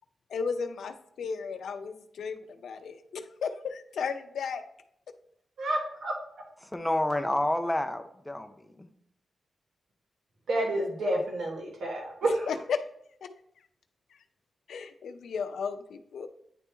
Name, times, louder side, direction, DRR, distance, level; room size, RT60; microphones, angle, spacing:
voice 1, 0.3-4.6 12.2-12.8 14.7-16.3, left 5 dB, 85° left, 8 dB, 0.5 m, -34 dB
voice 2, 5.6-6.1 10.5-12.5, right 1 dB, 80° right, -2 dB, 1.3 m, -29 dB
voice 3, 6.6-8.9, left 1 dB, 10° left, 8 dB, 0.5 m, -29 dB
9.6 x 3.4 x 3.0 m, 0.71 s
wide cardioid pair, 140°, 0 cm